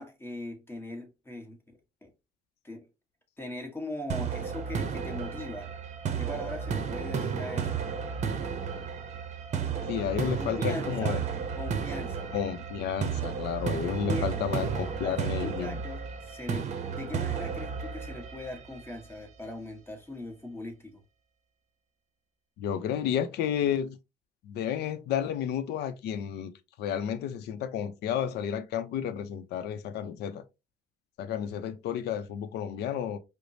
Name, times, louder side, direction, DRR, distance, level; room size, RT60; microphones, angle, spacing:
voice 1, 0.0-2.1 2.6-2.9 3.4-5.7 6.1-7.8 10.3-11.2 11.6-12.3 14.0-21.0, left 1 dB, 15° left, 1.2 m, -40 dB
sound 1, 4.1-19.1, right 6 dB, 45° right, 0.7 m, -33 dB
voice 2, 9.9-11.2 12.3-15.8 22.6-24.0 24.4-26.5 26.8-30.4 31.2-33.2, left 9 dB, 75° left, 0.6 m, -31 dB
4.9 x 2.1 x 2.7 m
cardioid pair, 110°, 17 cm